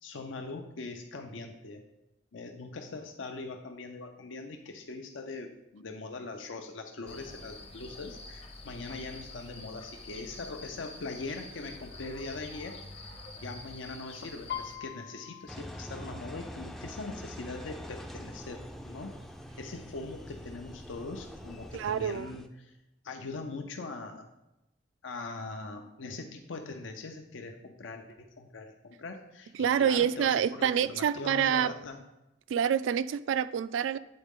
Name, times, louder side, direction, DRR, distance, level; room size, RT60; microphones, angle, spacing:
voice 1, 0.0-1.9 2.3-19.1 19.6-22.8 23.0-24.2 25.0-29.5 29.8-32.0, left 3 dB, 85° left, 4 dB, 0.6 m, -41 dB
sound 1, 7.1-14.8, left 2 dB, 30° left, 0.7 m, -47 dB
Piano, 14.5-18.1 18.5-18.9 19.2-19.9 20.5-20.6 20.8-21.8 22.2-22.3, left 10 dB, 60° left, 0.9 m, -44 dB
Engine, 15.5-22.5, equal, ahead, 0.3 m, -44 dB
voice 2, 21.7-22.3 29.6-31.7 32.5-34.0, right 8 dB, 85° right, 16 dB, 0.3 m, -27 dB
8.7 x 4.0 x 3.6 m, 0.93 s
head